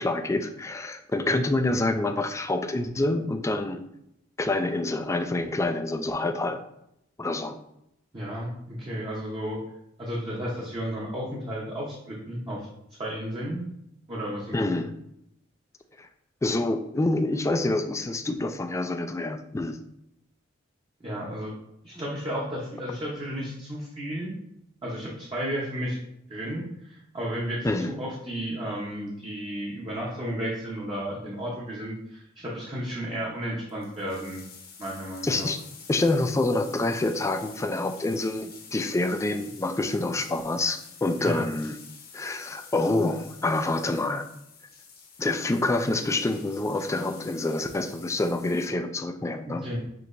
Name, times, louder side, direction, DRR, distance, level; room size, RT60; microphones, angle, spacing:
voice 1, 0.0-3.8 4.4-6.6 7.2-7.6 14.5-14.9 16.0-16.1 16.4-19.8 27.6-27.9 35.2-35.6 35.9-41.8 42.1-44.3 45.2-49.6, left 2 dB, 15° left, 7 dB, 0.3 m, -27 dB
voice 2, 8.1-9.6 10.0-12.7 13.0-13.7 14.1-14.7 21.0-21.5 21.8-24.3 24.8-26.0 26.3-34.4 34.8-35.5 41.2-41.4 49.5-49.8, equal, 25° right, -5 dB, 0.8 m, -33 dB
sound 1, 33.3-33.4 33.6-48.7, left 5 dB, 50° left, 0.9 m, -48 dB
6.1 x 2.8 x 2.6 m, 0.79 s
head